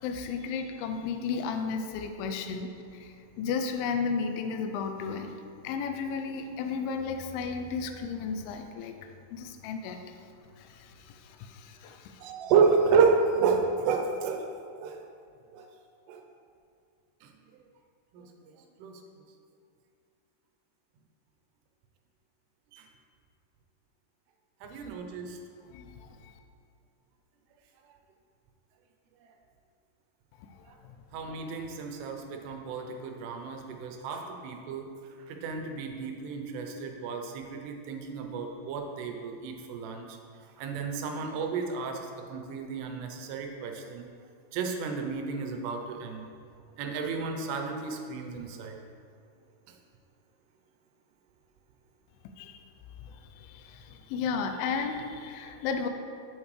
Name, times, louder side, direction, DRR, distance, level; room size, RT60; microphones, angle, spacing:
voice 1, 0.0-8.9 9.3-10.2 10.6-12.3 24.7-24.8 25.7-26.4 30.8-31.0 52.4-52.6 53.1-55.9, left 5 dB, 85° left, 6 dB, 2.2 m, -34 dB
voice 2, 12.2-14.5 14.8-15.0 15.5-15.7 16.1-16.2 17.2-17.3 18.1-18.3 18.8-19.0 22.7-22.9 24.6-25.4 31.1-34.9 35.3-40.2 40.6-44.1 44.5-46.3 46.8-48.8, right 5 dB, 90° right, 4 dB, 2.9 m, -30 dB
8.4 x 7.4 x 3.2 m, 2.3 s
omnidirectional pair, 4.7 m